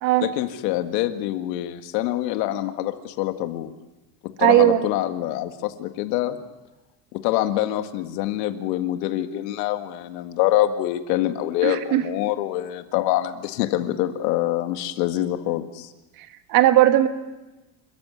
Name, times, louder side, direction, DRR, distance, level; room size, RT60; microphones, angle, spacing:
voice 1, 0.2-3.7 4.4-6.4 7.1-15.9, left 14 dB, 75° left, 8 dB, 2.0 m, -25 dB
voice 2, 4.4-4.8 11.6-12.0 16.5-17.1, right 14 dB, 45° right, 8 dB, 1.5 m, -17 dB
29.0 x 14.0 x 9.5 m, 1.1 s
cardioid pair, 175°, 49 cm